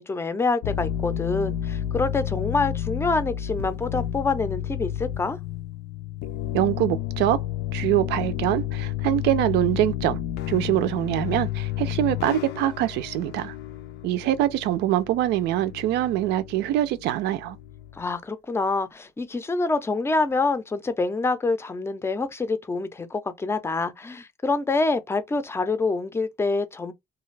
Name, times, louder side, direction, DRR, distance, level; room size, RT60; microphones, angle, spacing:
voice 1, 0.0-5.4 17.9-26.9, left 3 dB, 15° left, 0.5 m, -26 dB
sound 1, 0.6-18.0, left 11 dB, 75° left, 0.5 m, -31 dB
voice 2, 6.5-7.4 7.7-10.2 10.5-13.5 14.0-17.6, right 13 dB, 80° right, 0.4 m, -24 dB
2.5 x 2.3 x 3.2 m
cardioid pair, 110°, 17 cm